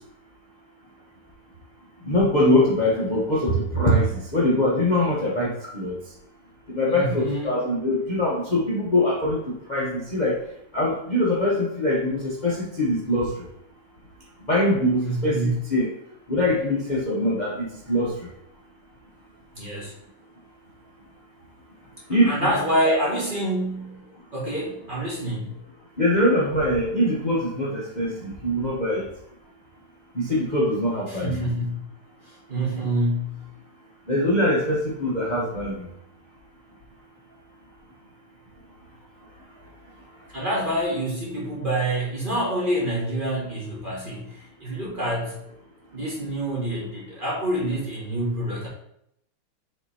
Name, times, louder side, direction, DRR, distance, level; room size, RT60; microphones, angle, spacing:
voice 1, 2.0-6.0 6.7-10.3 10.7-13.4 14.5-15.4 15.7-15.9 16.3-18.3 22.1-22.5 22.8-23.0 26.0-29.1 30.1-31.4 34.1-35.9, left 1 dB, 30° left, -5 dB, 0.9 m, -23 dB
voice 2, 6.9-7.5 15.0-15.6 19.5-19.9 22.2-24.1 24.3-25.6 31.1-31.8 32.2-33.5 40.3-45.4 45.9-48.7, right 1 dB, 25° right, -5 dB, 1.5 m, -27 dB
6.9 x 3.5 x 4.2 m, 0.74 s
omnidirectional pair, 2.4 m